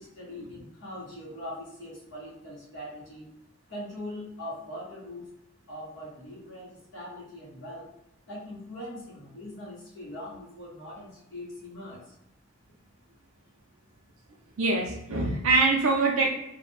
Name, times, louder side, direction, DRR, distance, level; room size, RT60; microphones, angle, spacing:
voice 1, 0.0-3.3 3.7-5.3 5.7-7.9 8.3-12.1, left 1 dB, 55° left, -5 dB, 1.1 m, -41 dB
voice 2, 14.6-16.3, right 3 dB, 75° right, -1 dB, 0.5 m, -23 dB
2.4 x 2.1 x 3.2 m, 0.87 s
head